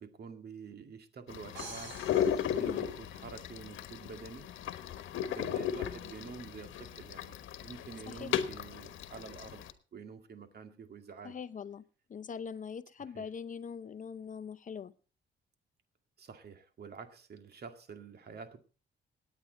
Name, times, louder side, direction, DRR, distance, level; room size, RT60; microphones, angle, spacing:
voice 1, 0.0-2.0 2.6-4.5 5.2-9.6 9.9-11.4 13.1-13.3 16.2-18.6, right 5 dB, 55° right, 2.1 m, -48 dB
sound 1, 1.3-9.7, left 9 dB, 80° left, 1.2 m, -36 dB
sound 2, 1.5-3.5, right 4 dB, 75° right, 4.6 m, -48 dB
voice 2, 11.2-11.8 12.1-14.9, left 6 dB, 40° left, 0.7 m, -42 dB
18.5 x 9.2 x 4.1 m
cardioid pair, 90°, 20 cm